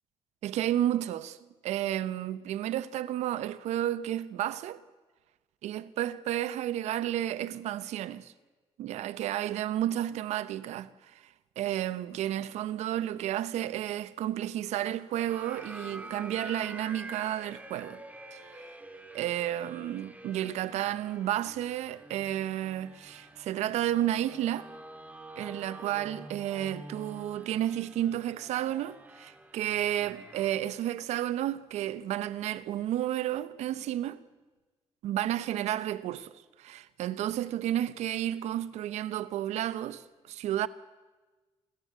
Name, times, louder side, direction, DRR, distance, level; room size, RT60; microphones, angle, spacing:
voice 1, 0.4-1.4 1.6-4.8 5.6-8.3 8.8-11.2 11.6-18.0 18.3-18.7 19.1-24.7 25.4-34.2 35.0-36.3 36.6-40.7, right 12 dB, 85° right, 0.9 m, -32 dB
sound 1, 15.3-30.5, right 1 dB, 15° right, 2.8 m, -47 dB
27.5 x 14.0 x 8.2 m
cardioid pair, 90°, 11 cm